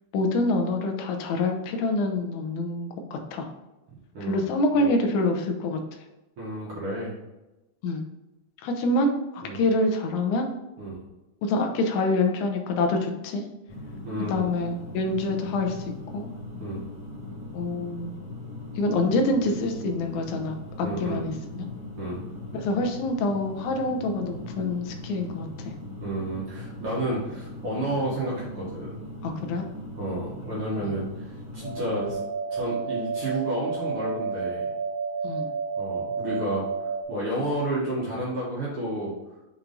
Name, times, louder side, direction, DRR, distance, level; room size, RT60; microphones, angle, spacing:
voice 1, 0.1-3.5 4.2-5.8 7.8-8.1 8.6-10.5 11.4-13.4 14.3-16.3 17.5-18.1 18.8-21.7 22.5-25.7 29.2-29.7 30.8-31.0 35.2-35.5, left 2 dB, 75° left, 4 dB, 2.2 m, -26 dB
voice 2, 6.4-7.1 9.4-9.6 10.8-11.0 14.0-14.5 16.6-16.8 20.8-21.2 22.0-22.2 26.0-28.9 30.0-31.3 31.5-32.2 32.5-34.7 35.8-36.7 37.1-39.1, right 1 dB, 50° right, -6 dB, 1.9 m, -31 dB
sound 1, 13.7-32.1, left 1 dB, 15° right, 1.1 m, -39 dB
sound 2, 31.6-37.0, right 5 dB, 75° right, 2.0 m, -30 dB
5.9 x 4.5 x 3.9 m, 1.0 s
omnidirectional pair, 3.6 m